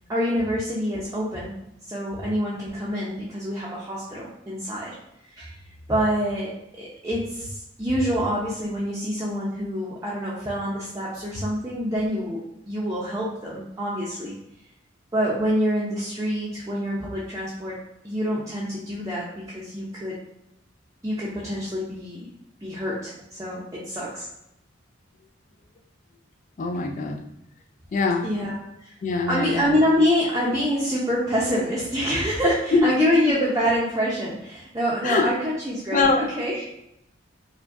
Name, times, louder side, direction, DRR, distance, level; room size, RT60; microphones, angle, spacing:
voice 1, 0.1-1.5 1.9-4.9 5.3-5.6 5.9-6.5 6.8-14.4 15.1-20.2 21.0-22.3 22.6-24.3 28.2-28.9 29.3-36.6, equal, 15° right, -7 dB, 0.5 m, -26 dB
voice 2, 26.6-27.2 27.9-28.3 29.0-29.8 32.7-33.3 35.0-35.3 35.9-36.3, left 3 dB, 40° left, 3 dB, 0.3 m, -23 dB
4.5 x 2.2 x 2.6 m, 0.84 s
head